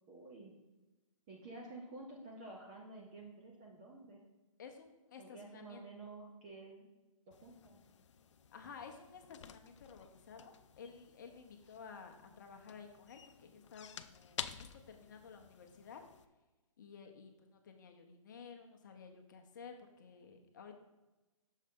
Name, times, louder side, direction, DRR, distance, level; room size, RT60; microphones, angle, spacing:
voice 1, 0.1-0.6 1.3-4.2 5.2-6.9 7.3-7.8, right 2 dB, 15° right, -1 dB, 0.4 m, -51 dB
voice 2, 4.6-5.8 8.5-16.0 16.8-20.7, left 6 dB, 35° left, 4 dB, 0.7 m, -53 dB
sound 1, 7.3-16.3, left 8 dB, 60° left, 0.4 m, -52 dB
6.5 x 3.3 x 5.2 m, 1.1 s
hypercardioid pair, 165°, 18 cm